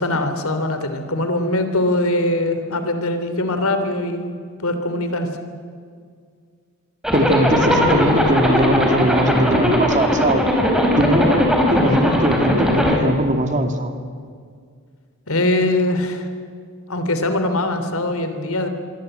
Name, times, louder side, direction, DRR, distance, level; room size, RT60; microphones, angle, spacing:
voice 1, 0.0-4.3 4.6-5.3 15.3-16.3 16.9-18.7, left 1 dB, 75° left, 8 dB, 3.2 m, -22 dB
Zipper (clothing), 7.0-13.0, left 1 dB, 5° right, 4.5 m, -18 dB
voice 2, 7.1-10.4 11.0-13.9, right 1 dB, 35° right, 6 dB, 2.3 m, -20 dB
26.0 x 23.0 x 9.0 m, 2.1 s
head